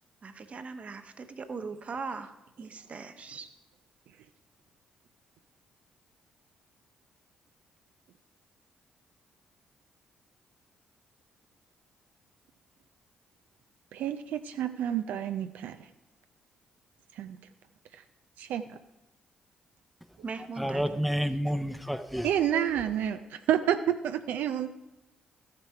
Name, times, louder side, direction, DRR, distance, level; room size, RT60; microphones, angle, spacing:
voice 1, 0.2-3.5 20.2-20.8, right 4 dB, 45° right, 0.9 m, -40 dB
voice 2, 13.9-15.9 17.2-17.4 17.9-18.0 18.4-18.6 22.2-24.7, right 10 dB, 75° right, 0.4 m, -29 dB
voice 3, 20.6-22.6, equal, ahead, 0.7 m, -30 dB
13.0 x 6.6 x 4.6 m
hypercardioid pair, 50°, 3 cm